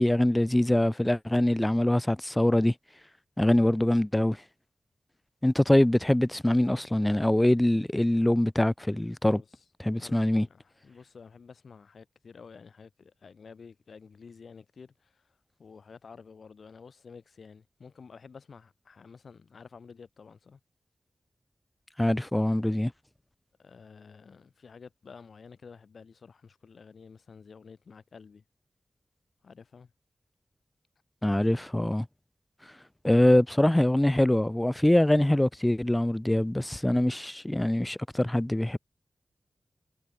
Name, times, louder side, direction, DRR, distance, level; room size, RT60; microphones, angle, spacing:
voice 1, 0.0-2.7 3.4-4.4 5.4-9.4 9.8-10.5 22.0-22.9 31.2-32.1 33.0-38.8, left 1 dB, 15° left, 0.4 m, -24 dB
voice 2, 9.3-9.6 10.0-20.6 23.6-28.4 29.4-29.9, left 5 dB, 80° left, 1.4 m, -51 dB
wide cardioid pair, 65°, 0 cm